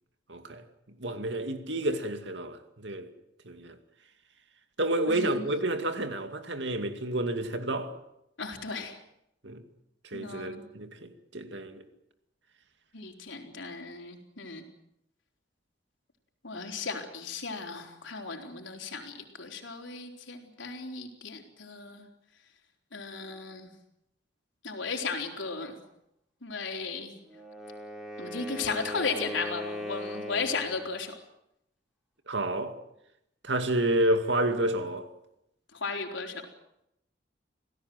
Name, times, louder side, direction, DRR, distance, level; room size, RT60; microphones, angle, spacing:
voice 1, 0.3-0.6 1.0-3.1 3.5-3.8 4.8-7.9 9.4-9.6 10.0-11.8 32.3-32.8 33.4-35.1, right 1 dB, 70° right, 2.4 m, -30 dB
voice 2, 5.1-5.4 8.4-9.0 10.1-10.6 12.9-14.6 16.4-22.1 22.9-23.7 24.6-25.8 26.4-27.1 28.2-31.1 35.7-36.4, left 4 dB, 85° left, 4.1 m, -35 dB
Wind instrument woodwind instrument, 27.2-30.8, left 1 dB, 5° right, 4.3 m, -38 dB
27.5 x 17.5 x 7.9 m
head